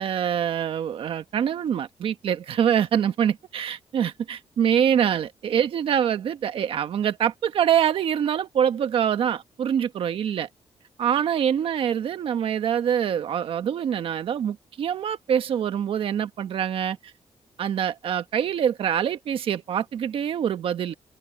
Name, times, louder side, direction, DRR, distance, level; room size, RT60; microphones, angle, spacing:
voice 1, 0.0-10.5 11.0-17.0 17.6-20.9, right 9 dB, 65° right, 1.3 m, -25 dB
wide cardioid pair, 160°, 10 cm